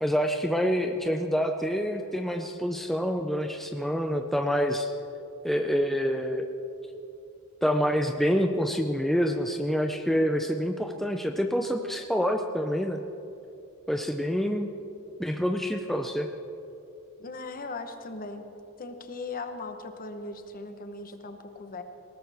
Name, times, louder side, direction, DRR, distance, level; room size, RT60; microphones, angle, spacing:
voice 1, 0.0-4.9 5.4-6.5 7.6-13.0 13.9-14.7 15.2-16.3, equal, ahead, 4 dB, 0.5 m, -27 dB
voice 2, 17.2-18.4 18.8-21.8, left 3 dB, 40° left, 7 dB, 1.1 m, -38 dB
19.5 x 18.0 x 3.5 m, 2.8 s
head